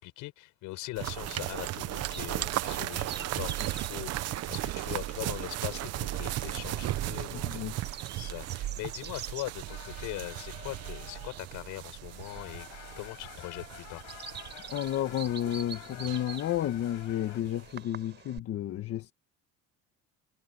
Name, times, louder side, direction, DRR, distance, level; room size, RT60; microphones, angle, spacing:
voice 1, 0.0-12.7 13.0-14.1, left 19 dB, 70° left, 7.4 m, -41 dB
sound 1, 1.0-17.1 17.4-17.5, right 15 dB, 50° right, 1.0 m, -36 dB
Bird vocalization bird call bird song, 1.4-18.4, right 7 dB, 35° right, 5.4 m, -48 dB
voice 2, 7.3-7.7 14.7-19.1, left 12 dB, 45° left, 1.6 m, -32 dB
sound 2, 9.7-11.8 12.0-17.4, left 30 dB, 90° left, 7.2 m, -49 dB
cardioid pair, 130°, 31 cm